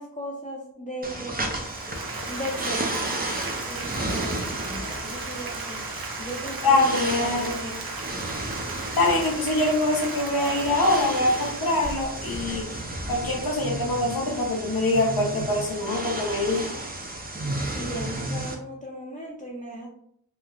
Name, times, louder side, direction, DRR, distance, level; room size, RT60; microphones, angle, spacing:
voice 1, 0.0-1.5 2.3-3.2 3.7-5.8 6.2-7.8 17.7-19.9, equal, 20° left, -2 dB, 0.5 m, -36 dB
sound 1, 1.0-18.6, right 1 dB, 25° right, 0.5 m, -33 dB
Applause, 1.5-13.2, right 3 dB, 75° right, 0.6 m, -37 dB
voice 2, 6.6-7.6 9.0-12.7 13.1-16.6, left 2 dB, 80° left, -1 dB, 0.8 m, -24 dB
3.0 x 2.1 x 2.4 m, 0.67 s
wide cardioid pair, 50°, 35 cm